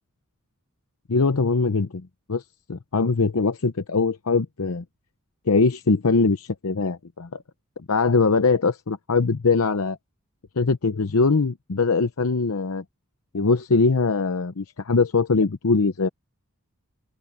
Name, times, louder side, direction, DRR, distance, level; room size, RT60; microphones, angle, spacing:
voice 1, 1.1-2.4 2.7-4.8 5.5-7.4 7.9-10.0 10.6-12.8 13.3-16.1, left 4 dB, 70° left, 0.8 m, -22 dB
open air
head